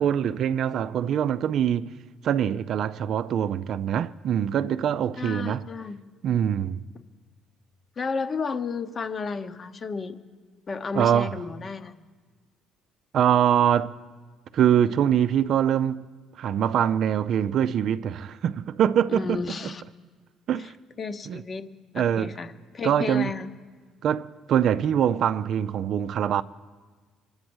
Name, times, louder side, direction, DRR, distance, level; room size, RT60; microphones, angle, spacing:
voice 1, 0.0-1.9 2.2-5.7 6.2-6.8 10.9-11.4 13.1-14.0 14.5-16.0 16.4-19.4 20.5-20.7 21.3-21.4 21.9-22.4 22.8-23.3 24.0-26.4, right 9 dB, 60° right, 0.4 m, -23 dB
voice 2, 5.2-6.0 8.0-10.2 10.7-11.9 19.1-19.8 20.6-20.7 21.0-21.7 21.9-23.5, left 4 dB, 35° left, 1.0 m, -32 dB
25.5 x 8.8 x 6.2 m
cardioid pair, 95°, 0 cm